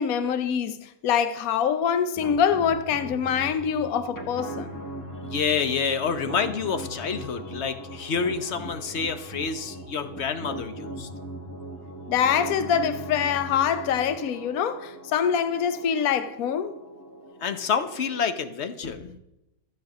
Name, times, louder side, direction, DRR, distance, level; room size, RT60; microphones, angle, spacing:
voice 1, 0.0-4.7 12.1-16.7, left 8 dB, 75° left, 1.2 m, -25 dB
sound 1, 2.2-18.2, right 1 dB, 15° left, 1.3 m, -39 dB
voice 2, 5.2-11.1 17.4-19.2, left 6 dB, 55° left, 1.2 m, -28 dB
14.5 x 6.6 x 7.2 m
omnidirectional pair, 1.5 m